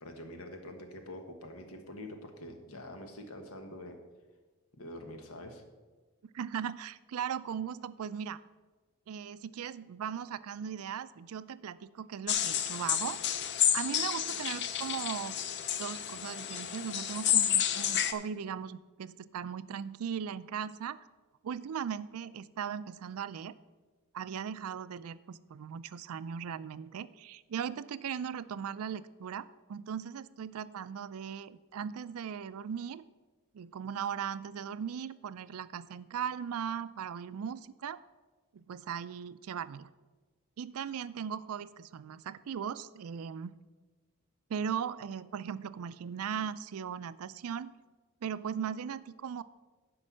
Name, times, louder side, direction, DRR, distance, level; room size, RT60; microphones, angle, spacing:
voice 1, 0.0-4.0 4.8-5.6, left 1 dB, 85° left, 5 dB, 1.3 m, -45 dB
voice 2, 6.3-8.4 9.1-13.2 13.7-15.4 15.8-21.0 21.4-23.5 24.1-33.0 33.5-38.0 38.5-39.9 40.6-43.6 44.5-47.7 48.2-49.4, right 7 dB, 85° right, 16 dB, 0.4 m, -38 dB
sound 1, 12.3-18.1, left 10 dB, 55° left, 0.6 m, -30 dB
9.9 x 5.4 x 6.2 m, 1.3 s
head